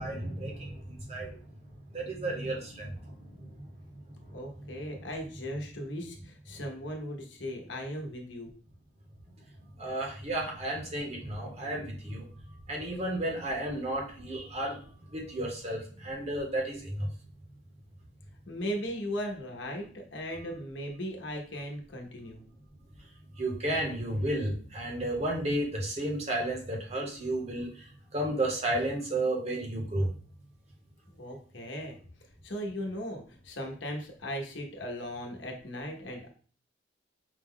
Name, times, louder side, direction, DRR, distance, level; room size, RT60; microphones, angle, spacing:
voice 1, 0.0-1.4 1.9-3.5 9.8-12.3 12.7-14.8 15.1-17.1 23.4-27.7 28.1-30.1, right 1 dB, 35° right, 0 dB, 1.0 m, -32 dB
voice 2, 4.3-8.5 18.5-22.4 31.1-32.0 32.4-36.3, equal, 70° left, 2 dB, 0.9 m, -37 dB
5.1 x 2.2 x 3.6 m, 0.43 s
head